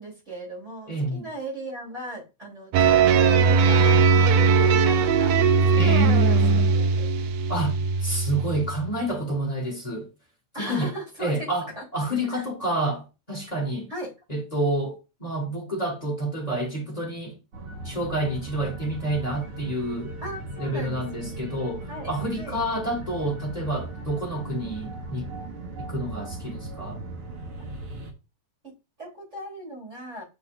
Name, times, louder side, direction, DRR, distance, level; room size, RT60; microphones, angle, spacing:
voice 1, 0.0-4.0 4.4-5.4 5.7-6.4 6.7-7.1 10.5-11.5 11.7-11.8 12.3-12.4 13.9-14.1 20.2-21.4 21.9-22.6 27.6-27.7 28.6-30.2, right 1 dB, 25° right, 3.4 m, -38 dB
voice 2, 0.9-1.3 5.8-6.7 7.5-7.7 8.0-10.1 10.6-10.9 11.2-13.9 14.3-17.4 17.8-20.1 20.6-25.3 25.8-27.0, right 1 dB, 20° left, 1.3 m, -29 dB
sound 1, 2.7-9.0, right 5 dB, 75° right, 1.6 m, -19 dB
sound 2, 17.5-28.1, right 2 dB, 55° right, 2.0 m, -38 dB
8.2 x 5.6 x 2.5 m
omnidirectional pair, 3.4 m